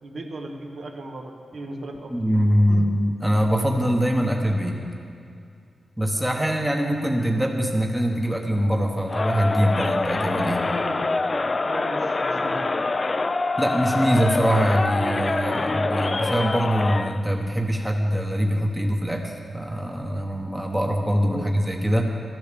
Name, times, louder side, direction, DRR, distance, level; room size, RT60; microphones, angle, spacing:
voice 1, 0.0-2.2 2.7-2.9 10.8-12.8 21.3-21.5, right 2 dB, 65° right, 2 dB, 1.3 m, -37 dB
voice 2, 2.1-4.8 6.0-10.7 13.6-22.1, equal, 5° right, 2 dB, 1.1 m, -23 dB
Crowd, 9.1-17.2, left 3 dB, 30° left, 0.4 m, -25 dB
13.5 x 10.5 x 6.8 m, 2.4 s
wide cardioid pair, 145°, 0 cm